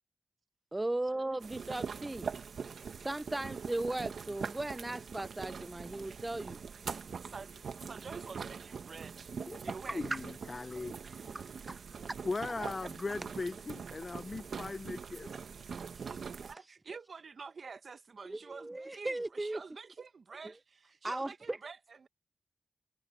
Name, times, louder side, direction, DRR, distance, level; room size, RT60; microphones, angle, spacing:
voice 1, 0.7-2.3 3.0-6.6 10.1-10.2 11.3-11.5 16.0-16.2 18.3-19.6 21.0-21.6, right 2 dB, 20° right, 0.4 m, -37 dB
sound 1, 1.4-16.5, right 6 dB, 80° right, 1.4 m, -43 dB
voice 2, 7.2-9.3 9.6-10.1 10.6-11.3 12.6-13.2 16.4-22.1, right 5 dB, 55° right, 0.9 m, -48 dB
voice 3, 9.9-11.0 12.2-15.3, left 3 dB, 35° left, 0.6 m, -38 dB
wide cardioid pair, 130°, 0 cm